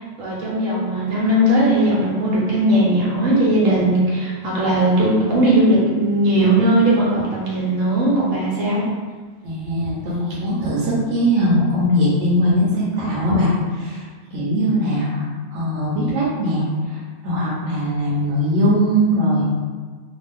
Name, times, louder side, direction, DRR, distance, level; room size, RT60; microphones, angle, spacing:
voice 1, 0.2-8.8, right 1 dB, 90° right, -6 dB, 1.2 m, -18 dB
voice 2, 9.4-19.4, equal, 70° right, -6 dB, 1.0 m, -20 dB
2.5 x 2.4 x 3.4 m, 1.5 s
omnidirectional pair, 1.3 m